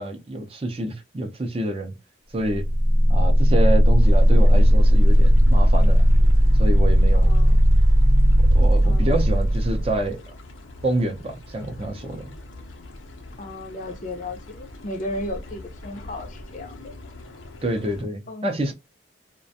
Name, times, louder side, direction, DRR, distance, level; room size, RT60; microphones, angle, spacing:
voice 1, 0.0-2.0 2.3-2.6 3.1-6.1 6.6-7.3 8.4-10.2 10.8-12.3 17.6-18.7, right 1 dB, 30° right, 0.4 m, -27 dB
sound 1, 2.6-10.1, equal, 80° right, 0.5 m, -16 dB
sound 2, 4.0-18.0, left 1 dB, 85° left, 0.6 m, -41 dB
voice 2, 7.1-7.6 8.8-9.2 13.4-16.9 18.3-18.5, left 1 dB, 40° left, 0.5 m, -34 dB
2.4 x 2.1 x 2.6 m
head